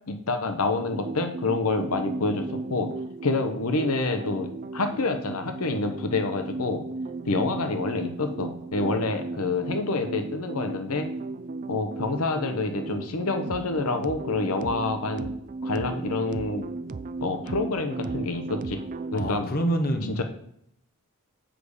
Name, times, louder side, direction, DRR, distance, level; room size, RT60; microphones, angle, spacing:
voice 1, 0.1-2.9 3.2-6.8 7.2-11.1 11.7-15.3 15.6-16.6 17.2-18.8 19.1-19.5 20.2-20.3, left 3 dB, 75° left, 6 dB, 0.9 m, -27 dB
sound 1, 0.8-19.3, right 3 dB, 35° right, 0.4 m, -35 dB
voice 2, 19.1-20.2, right 1 dB, 45° left, 5 dB, 1.1 m, -27 dB
7.6 x 4.9 x 6.6 m, 0.71 s
head